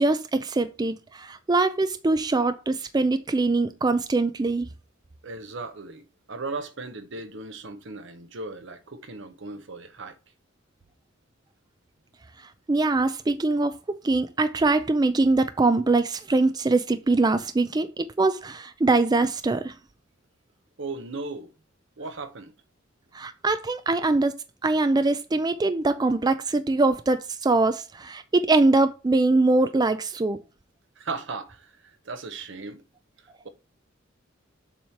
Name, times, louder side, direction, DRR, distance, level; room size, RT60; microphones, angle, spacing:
voice 1, 0.0-4.7 12.7-19.7 23.1-24.3 24.6-30.4, right 3 dB, 20° right, 0.4 m, -23 dB
voice 2, 5.2-10.2 20.8-21.5 22.0-22.5 31.0-32.8, right 3 dB, 65° right, 0.8 m, -37 dB
7.3 x 3.1 x 5.7 m
head